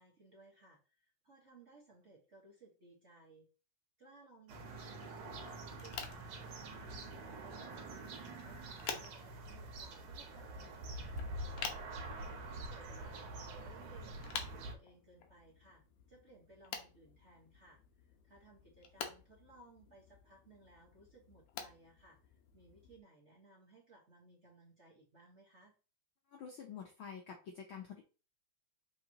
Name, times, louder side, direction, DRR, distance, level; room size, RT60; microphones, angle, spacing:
voice 1, 0.0-3.5 4.0-6.6 7.1-11.1 12.1-15.8 16.1-25.7, right 2 dB, 35° right, -4 dB, 1.1 m, -62 dB
sound 1, 4.5-14.7, right 2 dB, 80° right, 2.6 m, -46 dB
sound 2, 5.7-23.0, left 7 dB, 65° left, 1.9 m, -50 dB
voice 2, 26.3-28.0, left 7 dB, 90° left, 2 dB, 1.1 m, -48 dB
6.9 x 4.7 x 2.9 m, 0.34 s
omnidirectional pair, 3.4 m